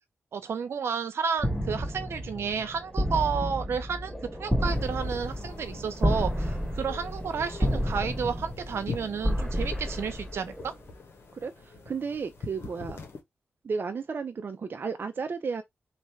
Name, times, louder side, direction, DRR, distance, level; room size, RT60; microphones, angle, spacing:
voice 1, 0.3-4.1 4.4-10.7, right 6 dB, 75° right, 0.8 m, -31 dB
sound 1, 1.4-10.9, equal, ahead, 1.6 m, -31 dB
sound 2, 4.6-13.2, left 4 dB, 70° left, 1.2 m, -44 dB
voice 2, 11.3-13.0 13.6-15.6, right 5 dB, 55° right, 0.5 m, -33 dB
3.2 x 2.6 x 4.4 m
cardioid pair, 50°, 4 cm